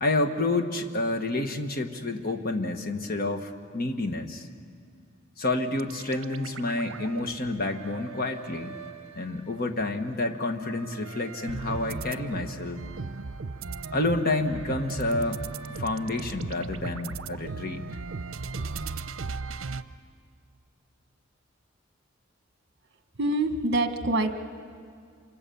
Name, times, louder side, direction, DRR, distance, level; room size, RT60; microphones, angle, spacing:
voice 1, 0.0-4.5 5.4-8.8 9.1-12.8 13.9-15.4 15.7-17.8, left 2 dB, 50° left, 6 dB, 1.5 m, -29 dB
sound 1, 5.7-9.9 10.3-19.8, right 4 dB, 80° right, 0.7 m, -38 dB
voice 2, 23.2-24.3, right 2 dB, 55° right, 7 dB, 1.5 m, -25 dB
27.0 x 24.5 x 7.1 m, 2.2 s
head